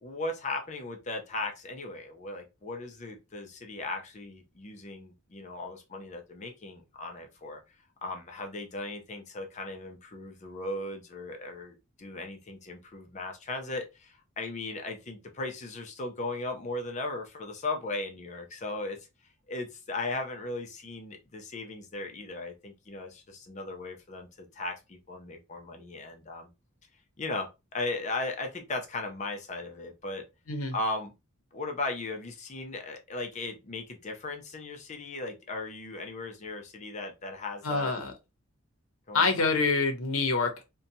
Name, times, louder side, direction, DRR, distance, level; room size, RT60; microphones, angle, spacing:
voice 1, 0.0-7.6 8.0-19.0 19.5-26.5 27.2-30.2 30.7-31.1 31.5-37.9 39.1-39.5, left 2 dB, 35° left, 0.5 m, -37 dB
voice 2, 37.6-38.1 39.1-40.6, left 4 dB, 75° left, 0.7 m, -26 dB
2.6 x 2.2 x 2.6 m
head